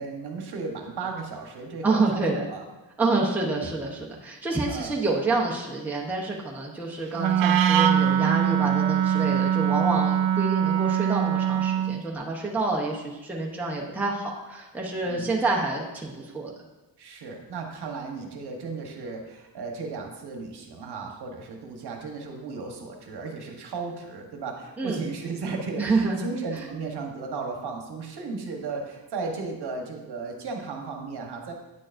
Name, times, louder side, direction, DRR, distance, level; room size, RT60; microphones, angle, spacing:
voice 1, 0.0-2.6 3.0-3.3 4.7-4.9 15.0-15.3 17.0-31.5, right 4 dB, 55° right, 2 dB, 1.2 m, -35 dB
voice 2, 1.8-2.5 3.0-16.5 24.8-25.0 25.8-26.3 26.5-26.7, right 3 dB, 5° right, -3 dB, 0.8 m, -28 dB
Wind instrument woodwind instrument, 7.2-12.0, right 9 dB, 75° right, 0.5 m, -22 dB
9.0 x 6.5 x 2.6 m, 1.1 s
wide cardioid pair, 145°, 46 cm